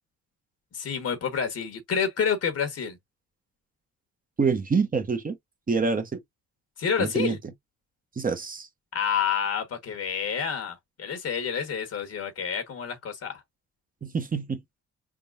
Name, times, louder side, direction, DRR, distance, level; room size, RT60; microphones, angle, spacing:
voice 1, 0.7-3.0 6.8-7.4 8.9-13.4, left 7 dB, 55° left, 1.2 m, -28 dB
voice 2, 4.4-5.4 5.7-6.2 7.0-7.4 8.2-8.7 14.0-14.6, right 5 dB, 30° right, 1.0 m, -26 dB
4.1 x 3.7 x 2.3 m
cardioid pair, 90°, 30 cm